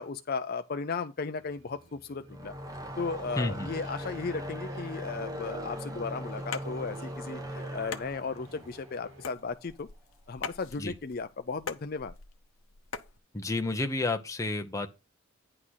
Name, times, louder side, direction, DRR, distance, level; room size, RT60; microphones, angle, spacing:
voice 1, 0.0-2.5 3.0-9.9 10.3-12.1, left 4 dB, 45° left, 0.5 m, -35 dB
Subway metro underground, 1.4-9.3, right 3 dB, 70° right, 1.5 m, -51 dB
sound 1, 2.2-9.6, equal, 15° right, 1.0 m, -40 dB
voice 2, 3.4-3.7 10.8-10.9 13.3-14.9, left 2 dB, 15° left, 0.8 m, -30 dB
sound 2, 6.5-13.2, left 6 dB, 70° left, 0.8 m, -43 dB
9.8 x 3.8 x 6.3 m
head